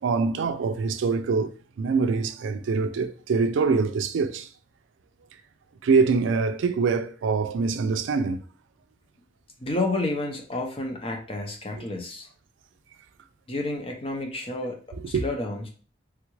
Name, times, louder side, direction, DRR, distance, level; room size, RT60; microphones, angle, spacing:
voice 1, 0.0-4.5 5.8-8.4 15.1-15.2, right 4 dB, 85° right, 0.4 m, -24 dB
voice 2, 9.6-12.3 13.5-15.7, left 2 dB, 30° left, 0.6 m, -30 dB
3.5 x 2.4 x 3.0 m
head